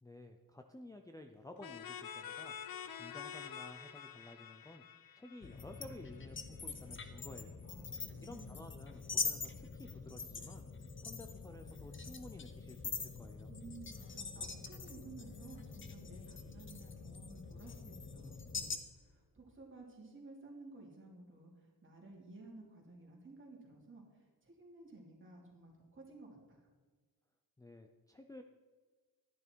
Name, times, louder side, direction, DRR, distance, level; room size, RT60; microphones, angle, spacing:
voice 1, 0.0-4.8 5.1-7.6 8.2-10.7 11.0-13.5 27.6-28.4, left 1 dB, 10° left, 5 dB, 0.5 m, -53 dB
sound 1, 1.6-6.2, left 8 dB, 75° left, 0.8 m, -48 dB
sound 2, 5.4-18.8, left 5 dB, 35° left, 0.8 m, -44 dB
voice 2, 7.6-8.6 13.5-26.7, right 3 dB, 35° right, -2 dB, 2.8 m, -55 dB
12.0 x 10.0 x 4.5 m, 1.4 s
wide cardioid pair, 170°, 36 cm